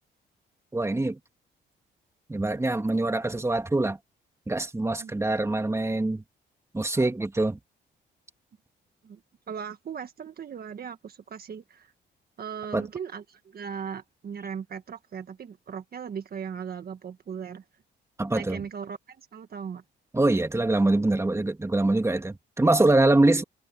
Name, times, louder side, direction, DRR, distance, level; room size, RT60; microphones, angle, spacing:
voice 1, 0.7-1.2 2.3-4.0 4.5-6.2 6.7-7.6 12.7-12.9 18.2-18.6 20.1-23.4, right 2 dB, 15° right, 2.7 m, -24 dB
voice 2, 9.5-11.9 12.4-17.6 18.3-19.8, right 7 dB, 50° right, 1.6 m, -38 dB
cardioid pair, 90°, 20 cm